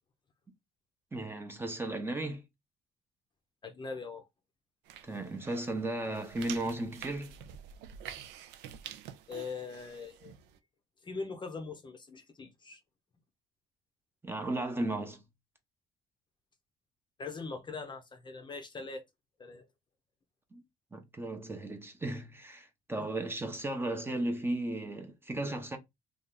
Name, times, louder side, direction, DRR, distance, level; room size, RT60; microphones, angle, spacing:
voice 1, 1.1-2.4 5.0-7.4 14.2-15.2 20.5-20.6 20.9-25.8, right 2 dB, 15° right, 0.6 m, -35 dB
voice 2, 3.6-4.3 9.3-10.3 11.0-12.8 17.2-19.0 19.4-19.7, left 4 dB, 25° left, 0.6 m, -41 dB
sound 1, 4.8-10.6, right 9 dB, 85° right, 0.5 m, -48 dB
2.7 x 2.4 x 3.5 m
cardioid pair, 110°, 17 cm